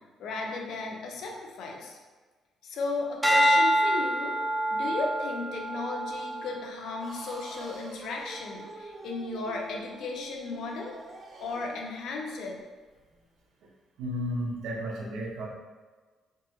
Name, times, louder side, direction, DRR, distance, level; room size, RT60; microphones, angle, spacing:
voice 1, 0.2-2.0 2.6-4.4 4.7-10.9 11.4-12.6, left 3 dB, 75° left, 0 dB, 0.6 m, -35 dB
sound 1, 3.2-7.7 8.3-8.7, equal, 10° right, 0.7 m, -27 dB
sound 2, 7.0-11.9, right 2 dB, 45° right, 0.6 m, -47 dB
voice 2, 14.0-15.5, equal, 85° right, -2 dB, 0.7 m, -33 dB
3.8 x 2.7 x 2.7 m, 1.4 s
cardioid pair, 95°, 0 cm